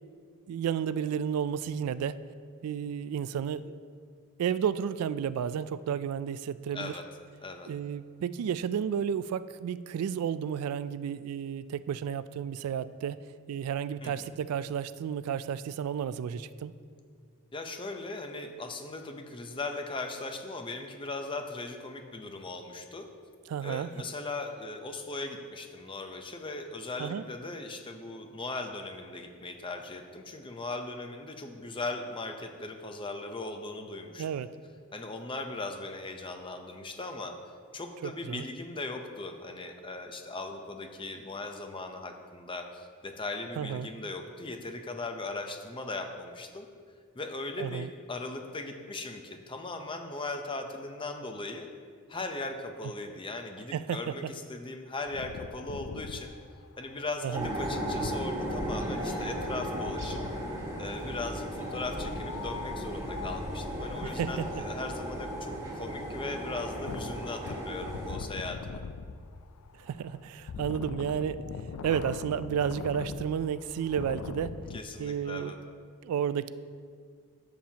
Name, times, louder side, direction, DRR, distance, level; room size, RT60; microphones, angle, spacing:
voice 1, 0.5-2.2 2.6-3.7 4.4-6.9 7.7-13.2 13.5-16.7 23.5-23.9 27.0-27.2 34.2-34.5 38.0-38.5 43.6-43.9 47.6-47.9 53.7-54.1 57.2-57.5 64.0-64.5 69.8-71.4 71.8-74.5 75.0-75.5 76.0-76.5, right 8 dB, 85° right, 16 dB, 0.3 m, -32 dB
voice 2, 14.0-14.3 17.5-23.1 23.6-34.4 34.9-37.3 37.7-46.7 47.1-51.7 52.1-56.3 56.8-60.2 60.8-68.8 74.7-75.6, left 2 dB, 25° left, 5 dB, 0.6 m, -38 dB
Wind, 55.1-60.5 61.5-74.8, left 5 dB, 85° left, 0.4 m, -43 dB
sound 1, 57.3-68.2, right 1 dB, 15° right, 1.5 m, -36 dB
11.5 x 7.4 x 2.8 m, 2.1 s
head